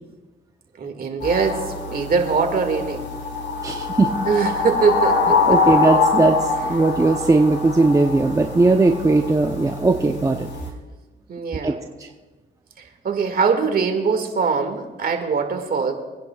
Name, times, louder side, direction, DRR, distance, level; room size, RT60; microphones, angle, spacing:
voice 1, 0.8-3.1 4.3-5.4 11.3-11.8 13.0-15.9, right 5 dB, 50° right, 4 dB, 2.0 m, -22 dB
sound 1, 1.2-10.7, left 4 dB, 70° left, 3.9 m, -24 dB
voice 2, 3.6-4.1 5.5-10.5 11.6-11.7, right 3 dB, 15° right, 3 dB, 0.7 m, -18 dB
26.0 x 10.0 x 2.4 m, 1.2 s
cardioid pair, 90°, 20 cm